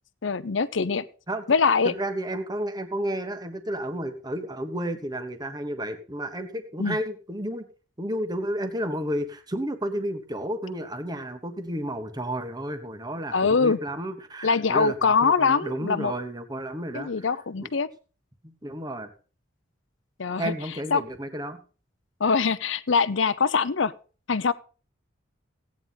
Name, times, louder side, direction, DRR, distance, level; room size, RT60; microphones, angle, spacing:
voice 1, 0.2-1.1 1.5-1.9 6.8-7.0 13.3-13.8 14.4-16.1 16.9-17.9 20.2-20.5 20.9-21.0 22.2-23.9 24.3-24.5, left 5 dB, 70° left, 16 dB, 0.7 m, -23 dB
voice 2, 1.8-7.7 8.0-17.3 17.6-17.7 18.4-19.1 20.4-21.6, right 1 dB, 20° right, 7 dB, 1.4 m, -32 dB
16.0 x 9.6 x 4.1 m, 0.38 s
head